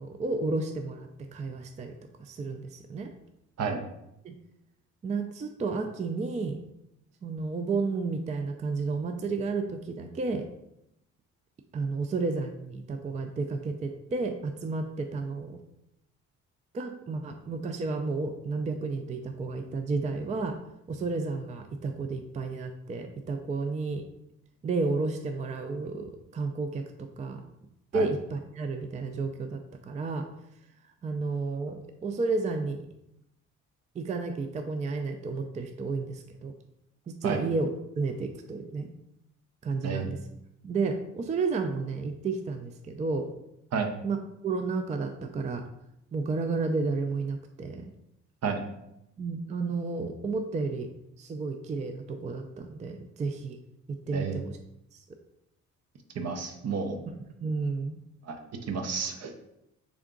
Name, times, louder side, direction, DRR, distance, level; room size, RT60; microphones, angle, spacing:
voice 1, 0.0-3.1 4.2-4.3 5.0-6.6 7.2-10.5 11.7-15.6 16.7-20.6 20.9-24.1 24.6-27.4 27.9-30.3 31.0-32.9 34.0-36.5 37.1-38.9 39.6-40.2 40.6-43.3 44.0-44.2 44.4-45.7 46.1-47.8 49.2-50.9 51.2-53.6 54.1-54.6 54.9-55.0 57.4-58.0, right 3 dB, 25° right, 6 dB, 0.3 m, -32 dB
voice 2, 56.1-57.0 58.2-58.4 58.7-59.3, right 5 dB, 55° right, 5 dB, 0.7 m, -31 dB
3.7 x 3.5 x 3.7 m, 0.85 s
cardioid pair, 90°, 30 cm